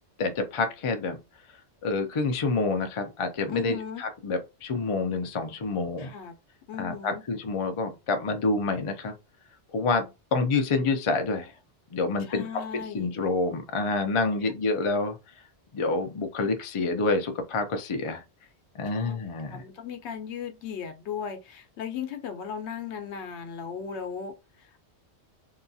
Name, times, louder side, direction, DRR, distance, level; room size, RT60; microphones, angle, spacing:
voice 1, 0.2-1.2 1.8-6.1 6.8-9.1 9.7-11.5 11.9-12.4 12.9-15.2 15.7-18.2 18.7-19.6, left 3 dB, 50° left, 0.3 m, -27 dB
voice 2, 3.5-4.1 6.0-6.3 6.7-7.2 12.3-13.2 14.4-14.5 18.9-19.2 19.5-24.8, left 7 dB, 80° left, 0.9 m, -37 dB
2.8 x 2.3 x 2.6 m
omnidirectional pair, 1.1 m